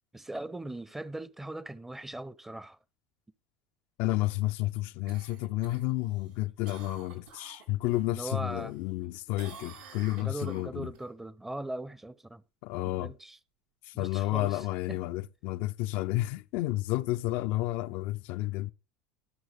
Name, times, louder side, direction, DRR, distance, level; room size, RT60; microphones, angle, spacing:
voice 1, 0.1-2.8 8.1-8.7 10.2-12.4 12.8-13.4 13.9-14.6 14.9-15.0, right 1 dB, 10° right, 0.8 m, -39 dB
voice 2, 4.0-10.9 12.6-13.1 13.8-18.7, left 17 dB, 60° left, 0.5 m, -31 dB
Cough, 5.1-8.1 8.5-9.1 9.4-11.0 15.5-15.6, right 5 dB, 75° right, 6.1 m, -50 dB
18.0 x 6.2 x 3.5 m
hypercardioid pair, 80°, 4 cm